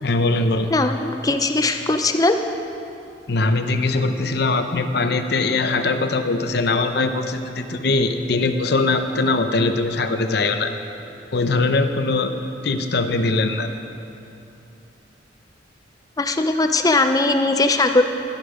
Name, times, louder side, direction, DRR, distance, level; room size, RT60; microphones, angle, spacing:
voice 1, 0.0-0.7 3.3-10.7 11.3-12.3 12.6-13.7, left 3 dB, 65° left, 8 dB, 0.7 m, -21 dB
voice 2, 0.7-2.4 16.2-18.0, left 2 dB, 20° left, 7 dB, 0.6 m, -19 dB
12.0 x 12.0 x 5.0 m, 2.8 s
head